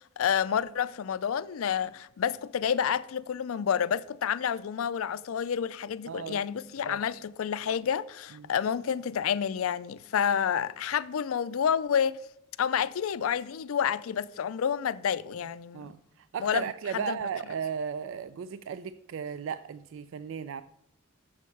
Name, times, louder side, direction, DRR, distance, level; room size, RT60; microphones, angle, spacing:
voice 1, 0.0-12.2 12.6-15.9 16.4-17.2, left 8 dB, 75° left, 0.4 m, -29 dB
voice 2, 6.1-6.4 6.9-7.0 8.4-8.5 15.7-20.6, right 7 dB, 65° right, 0.3 m, -35 dB
7.2 x 6.5 x 5.4 m
head